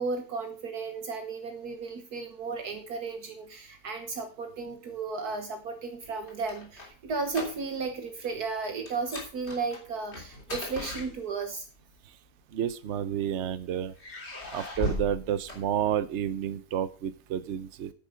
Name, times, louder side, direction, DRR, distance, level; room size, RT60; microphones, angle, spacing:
voice 1, 0.0-11.7, right 4 dB, 70° right, 6 dB, 1.7 m, -34 dB
sound 1, 6.1-8.0 8.2-8.5 8.9-11.6 12.5-13.4 13.9-16.2, left 2 dB, 40° left, 3.5 m, -38 dB
voice 2, 12.5-13.9 14.5-17.9, right 10 dB, 55° right, 14 dB, 1.0 m, -30 dB
10.5 x 9.5 x 5.2 m, 0.38 s
omnidirectional pair, 1.7 m